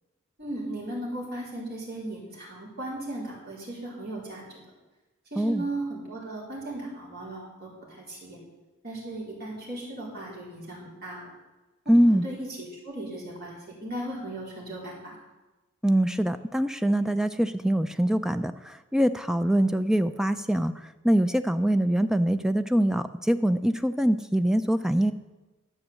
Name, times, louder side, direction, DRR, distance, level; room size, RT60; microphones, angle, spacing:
voice 1, 0.4-4.4 5.3-8.4 8.8-11.3 12.1-15.2, right 1 dB, 45° right, -5 dB, 4.2 m, -37 dB
voice 2, 11.9-12.2 15.8-20.7 21.0-25.1, right 1 dB, ahead, 10 dB, 0.3 m, -23 dB
12.0 x 6.3 x 7.6 m, 1.1 s
head